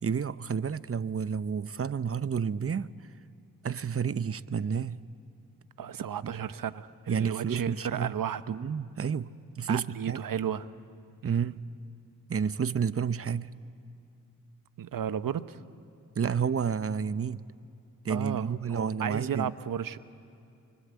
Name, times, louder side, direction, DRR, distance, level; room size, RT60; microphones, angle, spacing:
voice 1, 0.0-2.9 3.6-5.0 6.2-6.3 7.1-8.1 8.5-10.2 11.2-11.6 12.3-13.6 16.2-17.4 18.0-19.5, right 6 dB, 40° right, 0.8 m, -30 dB
voice 2, 5.8-8.6 9.7-10.7 11.2-11.6 14.8-15.6 18.1-20.0, right 8 dB, 70° right, 1.0 m, -34 dB
28.5 x 24.5 x 8.3 m
cardioid pair, 50°, 35 cm